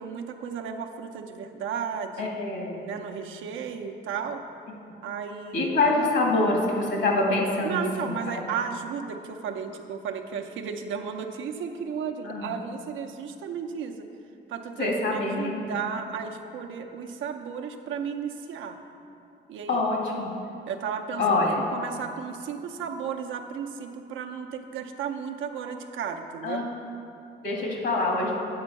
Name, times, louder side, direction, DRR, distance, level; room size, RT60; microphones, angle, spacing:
voice 1, 0.0-2.3 2.8-4.4 5.0-6.1 7.6-14.0 14.5-18.8 19.5-19.8 20.7-26.7, right 7 dB, 75° right, 4 dB, 0.7 m, -34 dB
voice 2, 2.2-2.8 5.5-8.4 12.2-12.5 14.8-15.6 19.7-20.3 21.2-21.5 26.4-26.6 27.4-28.3, left 2 dB, 65° left, -1 dB, 1.9 m, -25 dB
8.7 x 4.4 x 6.9 m, 2.6 s
cardioid pair, 90°, 20 cm